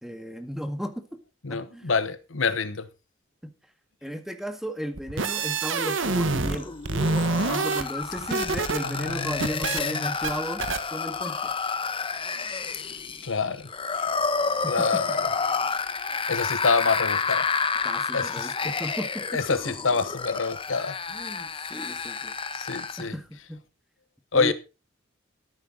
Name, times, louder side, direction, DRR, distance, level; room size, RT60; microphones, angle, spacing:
voice 1, 0.0-1.2 1.5-1.9 3.4-3.5 4.0-6.7 7.3-10.6 10.9-11.5 14.6-15.0 17.8-19.3 21.1-22.3 23.0-23.6 24.3-24.5, equal, ahead, 1.7 m, -34 dB
voice 2, 1.4-2.9 8.8-10.1 13.2-13.7 14.7-15.2 16.1-17.5 18.1-18.7 19.3-21.0 22.5-23.1 24.3-24.5, left 4 dB, 80° left, 1.1 m, -27 dB
sound 1, 5.0-6.6 6.8-8.8 9.1-9.8 10.2-10.3 10.6-10.8, right 3 dB, 75° right, 1.5 m, -26 dB
sound 2, 6.5-23.1, left 5 dB, 25° left, 1.0 m, -30 dB
13.0 x 11.5 x 4.0 m
head